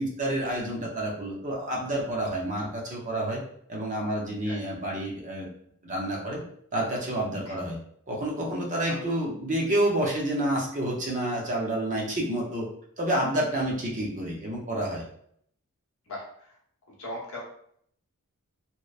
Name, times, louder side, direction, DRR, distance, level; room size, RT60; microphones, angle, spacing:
voice 1, 0.0-3.4 3.7-5.5 5.8-6.4 6.7-7.8 8.1-12.7 13.0-15.0, right 1 dB, 35° right, -2 dB, 0.5 m, -29 dB
voice 2, 16.1-16.5 16.9-17.4, left 1 dB, 65° left, -3 dB, 0.8 m, -39 dB
2.9 x 2.0 x 2.3 m, 0.66 s
head